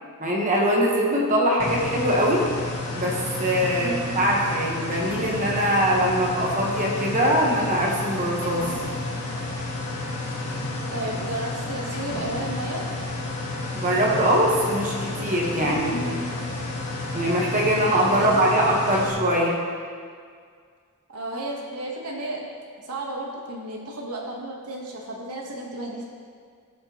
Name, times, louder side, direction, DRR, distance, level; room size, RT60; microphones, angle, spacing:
voice 1, 0.2-2.5 3.0-8.7 13.7-16.3 17.1-19.6, equal, 35° right, -2 dB, 1.2 m, -22 dB
sound 1, 1.6-19.1, left 2 dB, 70° left, 1.8 m, -31 dB
voice 2, 3.8-4.3 10.9-12.9 18.2-18.6 21.1-26.0, right 1 dB, 90° right, -2 dB, 1.3 m, -33 dB
15.0 x 6.6 x 3.0 m, 2.1 s
head